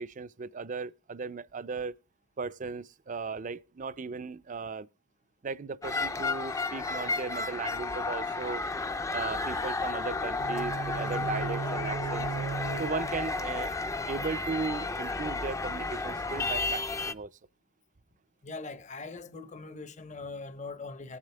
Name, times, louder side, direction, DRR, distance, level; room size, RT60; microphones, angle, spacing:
voice 1, 0.0-1.9 2.4-4.9 5.4-8.6 9.1-12.3 12.8-13.7 14.1-17.3, right 4 dB, 40° right, 0.4 m, -36 dB
sound 1, 5.8-17.1, left 3 dB, 15° left, 0.4 m, -32 dB
sound 2, 10.4-14.4, right 5 dB, 70° right, 0.7 m, -37 dB
voice 2, 18.4-21.2, left 3 dB, 35° left, 0.8 m, -41 dB
18.5 x 7.4 x 3.3 m
head